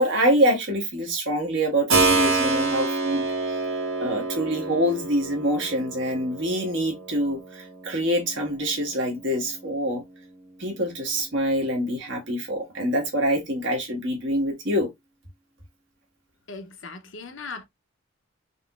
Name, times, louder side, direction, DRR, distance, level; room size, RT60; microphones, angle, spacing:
voice 1, 0.0-3.2 4.0-10.0 10.6-14.9, equal, 60° right, 1.4 m, -25 dB
Keyboard (musical), 1.9-10.5, right 3 dB, 80° right, 1.4 m, -28 dB
voice 2, 16.5-17.6, left 4 dB, 65° left, 0.7 m, -38 dB
3.7 x 3.0 x 2.3 m
head